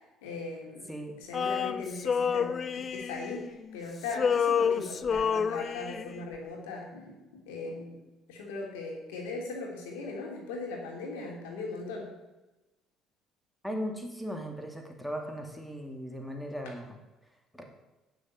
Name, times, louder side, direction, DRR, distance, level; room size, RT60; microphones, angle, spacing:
voice 1, 0.0-0.9 1.2-8.0 8.3-12.1 16.6-16.7, left 3 dB, 90° left, 0 dB, 3.0 m, -39 dB
Male singing, 1.3-3.8 4.1-6.2, left 6 dB, 45° left, 0.6 m, -29 dB
voice 2, 13.6-16.9 17.5-17.6, equal, 5° left, 3 dB, 2.4 m, -37 dB
9.9 x 6.7 x 7.6 m, 1.1 s
supercardioid pair, 70°, 0 cm